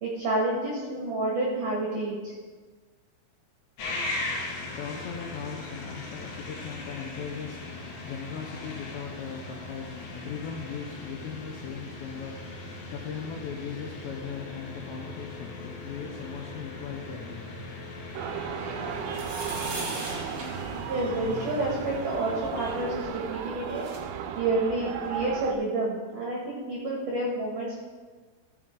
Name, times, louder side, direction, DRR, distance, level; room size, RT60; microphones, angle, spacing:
voice 1, 0.0-2.3 20.9-23.9 24.4-27.8, right 2 dB, 70° right, -3 dB, 2.0 m, -29 dB
sound 1, 3.8-23.0, left 2 dB, 55° left, 2.6 m, -39 dB
voice 2, 4.7-17.5, left 6 dB, 80° left, 1 dB, 2.6 m, -39 dB
sound 2, 18.1-25.5, right 7 dB, 85° right, 2.5 m, -35 dB
sound 3, 19.0-21.7 23.3-23.4 23.6-24.0, right 2 dB, 50° right, 1.9 m, -39 dB
14.5 x 7.4 x 3.7 m, 1.4 s
omnidirectional pair, 5.9 m